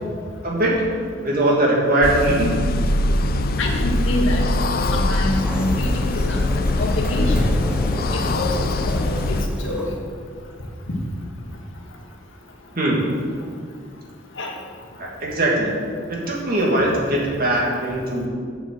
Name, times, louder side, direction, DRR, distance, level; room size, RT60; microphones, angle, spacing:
voice 1, 0.4-0.8 1.2-2.6 12.7-13.0 15.0-15.8 16.1-18.3, right 1 dB, 50° right, -3 dB, 2.5 m, -20 dB
sound 1, 2.0-9.5, left 2 dB, 50° left, 0.5 m, -22 dB
voice 2, 3.6-6.4 6.8-7.5 8.1-9.9 10.9-11.0 14.4-14.5, left 1 dB, 75° left, 0 dB, 1.7 m, -26 dB
Sliding door, 5.0-10.0, equal, 5° right, 0.8 m, -29 dB
8.1 x 7.3 x 7.7 m, 2.1 s
head